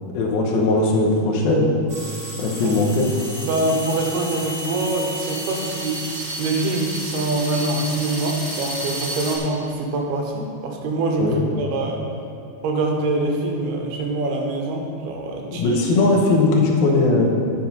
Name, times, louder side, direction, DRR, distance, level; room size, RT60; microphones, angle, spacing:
voice 1, 0.1-1.7 2.3-3.1 11.2-11.4 15.5-17.2, left 2 dB, 80° left, -1 dB, 3.0 m, -19 dB
sound 1, 1.9-9.4, right 1 dB, 45° right, 1.1 m, -32 dB
voice 2, 3.4-6.1 6.4-12.1 12.6-15.8, right 2 dB, 85° right, 1 dB, 3.2 m, -24 dB
11.0 x 5.9 x 5.5 m, 2.8 s
omnidirectional pair, 4.4 m